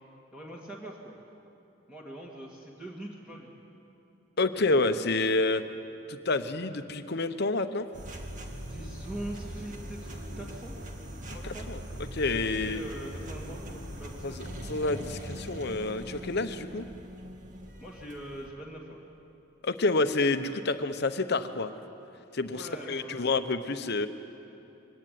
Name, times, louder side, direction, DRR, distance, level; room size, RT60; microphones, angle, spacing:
voice 1, 0.3-1.2 1.9-3.5 8.6-10.8 11.3-11.7 12.3-14.4 17.8-19.0 22.5-23.3, right 1 dB, 5° right, -4 dB, 2.2 m, -42 dB
voice 2, 4.4-5.6 6.1-7.9 11.3-11.4 11.7-11.8 12.1-12.8 14.2-16.8 19.6-21.7 22.3-24.1, left 3 dB, 50° left, 10 dB, 1.0 m, -28 dB
sound 1, 7.9-18.5, equal, 40° right, 2.1 m, -41 dB
23.5 x 18.0 x 9.4 m, 2.8 s
head